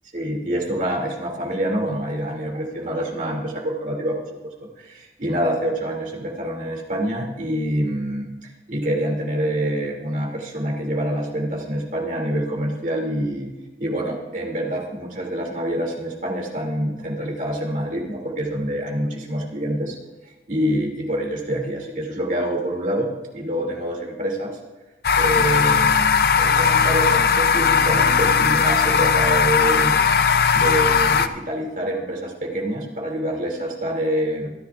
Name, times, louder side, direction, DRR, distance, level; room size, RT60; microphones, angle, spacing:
voice 1, 0.1-8.3 8.7-13.5 13.8-20.0 20.5-24.6 25.2-30.0 30.5-34.5, equal, 45° right, -1 dB, 2.6 m, -26 dB
sound 1, 25.0-31.3, left 6 dB, 60° left, 0.5 m, -18 dB
25.0 x 10.0 x 2.5 m, 1.1 s
head